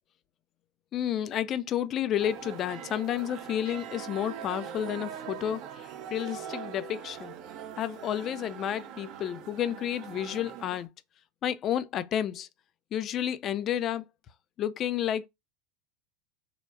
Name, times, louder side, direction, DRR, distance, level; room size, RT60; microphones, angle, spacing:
voice 1, 0.9-7.3 7.8-10.9 11.4-12.5 12.9-14.1 14.6-15.3, left 10 dB, 35° left, 0.3 m, -31 dB
sound 1, 2.2-10.9, right 9 dB, 50° right, 0.4 m, -42 dB
3.5 x 2.1 x 2.3 m
figure-of-eight pair, 80°, 0 cm